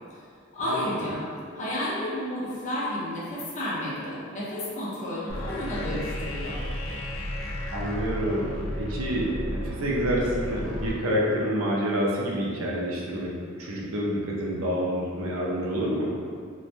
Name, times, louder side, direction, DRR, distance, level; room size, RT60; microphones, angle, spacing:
voice 1, 0.5-1.3 1.6-6.6, left 1 dB, 35° left, -8 dB, 0.7 m, -31 dB
sound 1, 5.3-10.9, left 1 dB, 85° left, 0.5 m, -33 dB
voice 2, 7.7-16.1, equal, 90° right, -3 dB, 0.5 m, -28 dB
3.1 x 2.1 x 2.5 m, 2.2 s
head